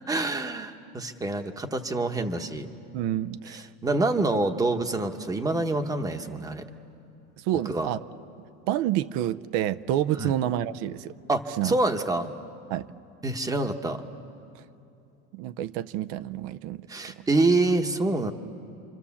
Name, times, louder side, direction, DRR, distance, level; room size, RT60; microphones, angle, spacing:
voice 1, 0.1-2.7 3.5-6.6 7.7-7.9 10.2-10.3 11.3-12.3 13.2-14.0 16.9-18.3, right 2 dB, 10° right, 7 dB, 1.0 m, -26 dB
voice 2, 2.9-3.7 4.2-4.3 7.4-8.0 8.7-11.1 11.6-11.8 12.7-12.9 15.3-16.9, right 12 dB, 65° right, 14 dB, 0.7 m, -28 dB
29.5 x 25.5 x 7.2 m, 2.8 s
cardioid pair, 160°, 33 cm